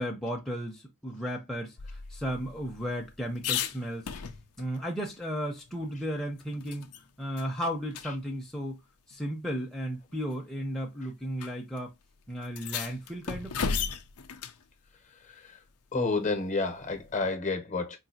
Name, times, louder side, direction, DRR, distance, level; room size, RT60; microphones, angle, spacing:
voice 1, 0.0-4.1 4.6-6.9 7.2-8.8 9.1-11.9 12.3-13.8, equal, ahead, 0.6 m, -34 dB
sound 1, 1.8-4.8 5.1-5.2 5.6-7.0 7.4-7.5 7.9-8.1 9.1-9.2 10.1-10.4 11.4-11.5 11.8-11.9 12.4-14.6 16.9-17.3, left 6 dB, 80° left, 0.6 m, -36 dB
voice 2, 15.9-18.0, left 3 dB, 35° left, 0.9 m, -29 dB
4.0 x 2.7 x 2.7 m
head